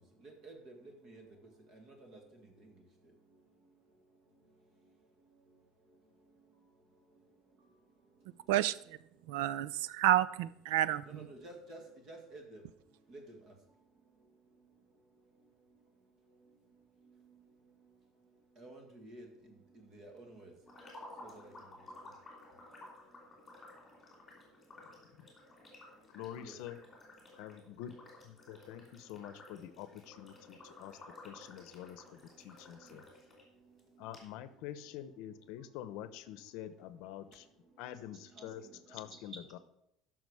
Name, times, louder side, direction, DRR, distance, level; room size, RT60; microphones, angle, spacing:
voice 1, 9.3-11.3, right 13 dB, 85° right, 0.4 m, -30 dB
voice 2, 11.1-11.8 12.1-12.4 13.1-13.2 18.6-19.2 20.0-20.5 26.4-26.6, right 2 dB, 35° right, 2.0 m, -50 dB
sound 1, 20.7-33.4 33.8-33.9 34.1-34.2, left 2 dB, 10° left, 3.0 m, -54 dB
voice 3, 26.1-26.8 27.4-33.0 34.0-37.5 37.8-39.6, left 11 dB, 60° left, 0.8 m, -47 dB
13.5 x 6.0 x 4.8 m
cardioid pair, 175°, 0 cm